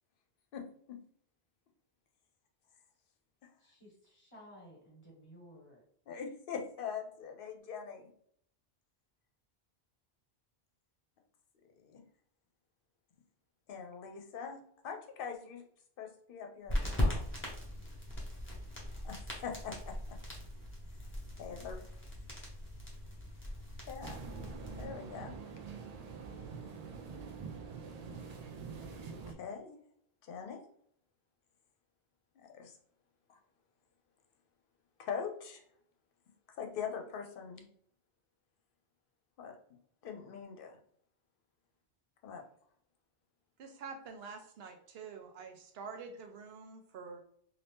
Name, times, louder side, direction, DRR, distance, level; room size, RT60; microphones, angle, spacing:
voice 1, 0.5-1.0 6.1-8.1 11.8-12.0 13.7-15.6 16.0-17.2 19.0-20.2 21.4-21.9 23.9-24.2 24.8-25.3 26.7-26.8 28.0-28.2 29.3-29.8 30.2-30.6 32.4-32.8 33.3-33.4 35.0-35.6 36.6-37.6 39.4-39.5 40.0-40.8 42.2-42.4, left 6 dB, 60° left, 4 dB, 0.8 m, -43 dB
voice 2, 3.6-5.8, equal, 30° left, -3 dB, 1.3 m, -56 dB
sound 1, 16.7-24.8, left 1 dB, 15° left, 0.9 m, -39 dB
sound 2, 24.0-29.3, right 5 dB, 55° right, 0.4 m, -45 dB
voice 3, 43.6-47.2, right 5 dB, 75° right, 6 dB, 0.8 m, -47 dB
2.7 x 2.7 x 3.4 m, 0.65 s
omnidirectional pair, 1.1 m